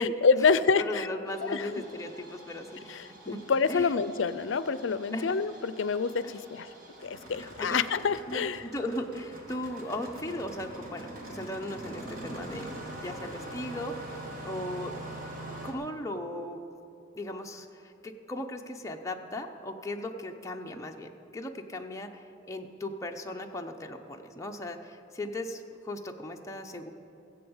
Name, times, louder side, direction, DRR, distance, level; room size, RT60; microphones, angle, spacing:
voice 1, 0.0-1.1 1.4-1.7 2.9-6.7 7.0-8.6, left 5 dB, 70° left, 15 dB, 0.5 m, -27 dB
voice 2, 0.8-3.4 3.7-3.9 5.1-5.3 6.2-6.3 7.3-7.8 8.3-14.0 14.4-14.9 15.6-16.6 17.1-26.9, left 1 dB, 15° left, 2 dB, 0.7 m, -37 dB
Engine starting, 1.3-15.7, right 1 dB, 45° right, 1.7 m, -44 dB
16.0 x 7.9 x 7.1 m, 2.7 s
head